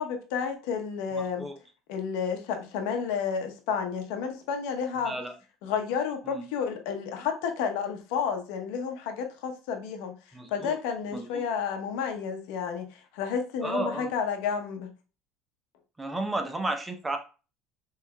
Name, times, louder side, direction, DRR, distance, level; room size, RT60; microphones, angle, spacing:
voice 1, 0.0-1.4 1.9-5.1 5.6-10.1 10.5-14.9, left 6 dB, 85° left, 5 dB, 0.8 m, -31 dB
voice 2, 5.0-5.3 6.3-6.5 10.3-10.8 11.1-11.4 13.6-14.1 16.0-17.2, right 2 dB, 15° right, 6 dB, 0.6 m, -32 dB
5.7 x 3.2 x 2.2 m, 0.34 s
cardioid pair, 130°, 0 cm